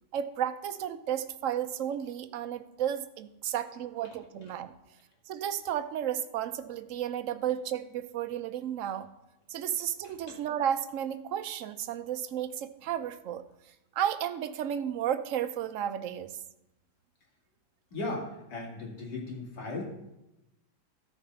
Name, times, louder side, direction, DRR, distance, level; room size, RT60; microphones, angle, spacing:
voice 1, 0.1-4.7 5.3-9.1 9.5-13.4 13.9-16.3, right 10 dB, 65° right, 11 dB, 0.8 m, -33 dB
voice 2, 17.9-19.8, left 2 dB, 85° left, -2 dB, 2.9 m, -37 dB
13.5 x 5.1 x 5.4 m, 0.93 s
omnidirectional pair, 1.8 m